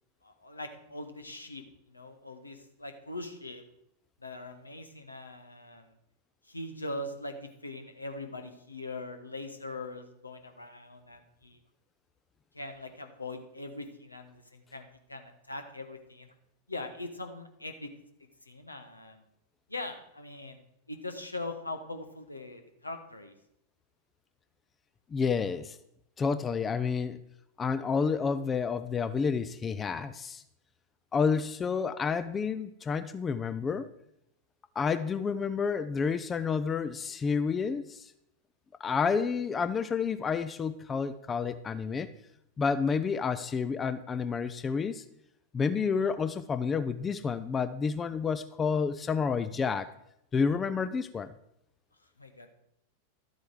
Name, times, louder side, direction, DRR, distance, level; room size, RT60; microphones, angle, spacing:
voice 1, 0.2-3.6 4.2-6.0 6.4-11.6 12.5-16.3 16.7-17.9 18.4-19.2 19.7-20.6 20.9-23.3 52.2-52.5, left 2 dB, 80° left, 6 dB, 1.2 m, -41 dB
voice 2, 25.1-25.8 26.2-27.2 27.6-30.4 31.1-33.9 34.8-38.1 38.8-42.1 42.6-45.0 45.5-49.9 50.3-51.3, left 5 dB, 20° left, 13 dB, 0.5 m, -30 dB
12.5 x 8.1 x 4.8 m, 0.77 s
figure-of-eight pair, 90°, 0 cm